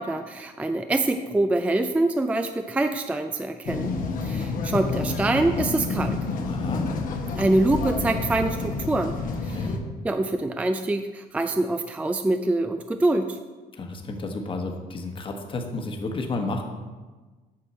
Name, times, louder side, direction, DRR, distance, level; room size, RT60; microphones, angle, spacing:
voice 1, 0.0-3.9 4.2-6.2 7.3-9.1 9.4-9.7 10.0-13.4, right 2 dB, 10° right, 7 dB, 0.3 m, -25 dB
sound 1, 3.6-9.8, left 4 dB, 55° left, 1.0 m, -29 dB
voice 2, 6.4-6.9 9.5-9.7 13.7-16.6, left 2 dB, 30° left, 3 dB, 1.2 m, -31 dB
8.6 x 6.2 x 4.2 m, 1.3 s
cardioid pair, 110°, 17 cm